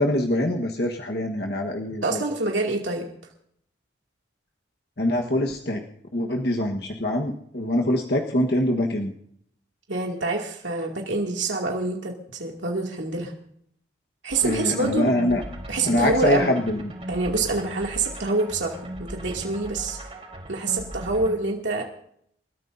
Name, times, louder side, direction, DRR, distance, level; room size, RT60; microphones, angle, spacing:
voice 1, 0.0-2.2 5.0-5.9 6.1-9.1 14.4-15.4 15.8-16.9, left 1 dB, 60° left, 1 dB, 1.3 m, -24 dB
voice 2, 2.0-3.1 9.9-13.3 14.2-15.1 15.7-16.5 17.1-20.0 20.5-21.9, right 2 dB, 90° right, 0 dB, 2.5 m, -26 dB
sound 1, 14.3-21.4, right 1 dB, 35° right, 3.8 m, -38 dB
29.0 x 13.5 x 2.7 m, 0.68 s
head